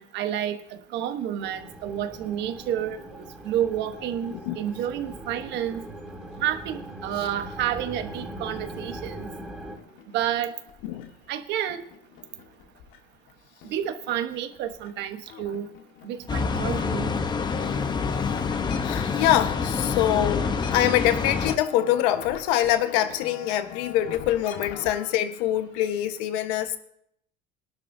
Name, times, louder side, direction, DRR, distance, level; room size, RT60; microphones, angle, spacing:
voice 1, 0.0-5.8 6.4-9.3 10.1-10.5 11.3-11.9 13.6-15.7 16.0-17.1, right 10 dB, 60° right, 1.2 m, -30 dB
sound 1, 1.4-9.8, right 1 dB, 5° right, 3.2 m, -40 dB
sound 2, 9.8-11.3 11.7-13.3 13.6-14.9 15.2-25.1, left 8 dB, 70° left, 1.8 m, -43 dB
sound 3, 16.3-21.6, left 5 dB, 20° left, 1.0 m, -27 dB
voice 2, 18.8-26.8, left 12 dB, 85° left, 1.3 m, -24 dB
23.0 x 12.0 x 2.8 m
cardioid pair, 125°, 20 cm